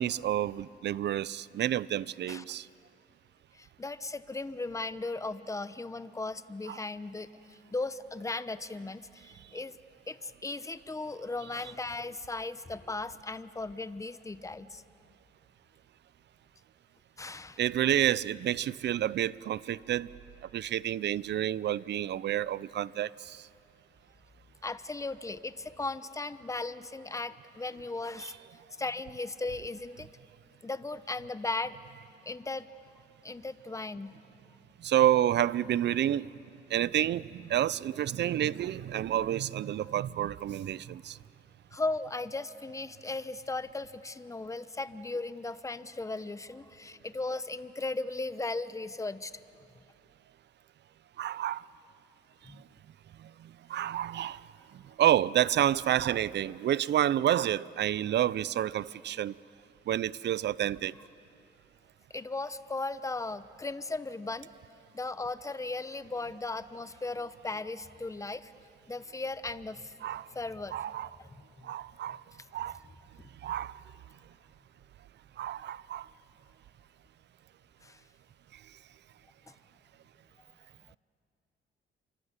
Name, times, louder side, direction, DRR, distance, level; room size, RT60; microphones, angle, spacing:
voice 1, 0.0-2.7 6.7-6.8 17.6-20.1 20.5-23.4 28.2-28.3 34.8-36.3 36.7-41.2 51.2-51.7 53.7-54.4 55.0-59.3 59.9-60.9 70.0-70.3 70.7-71.1 71.6-72.2 72.5-72.8 73.4-73.8 75.4-76.1, right 11 dB, 60° right, 20 dB, 0.6 m, -29 dB
voice 2, 3.5-9.8 10.1-14.8 17.2-17.6 24.6-28.4 28.8-30.1 30.6-31.8 32.2-32.7 33.2-34.1 41.7-49.3 52.4-52.6 62.1-64.5 64.9-68.5 68.9-69.9 70.3-70.8 71.2-71.3 71.6-71.7 77.8-78.0, left 3 dB, 15° left, 14 dB, 0.9 m, -37 dB
28.5 x 25.0 x 8.2 m, 2.6 s
cardioid pair, 90°, 20 cm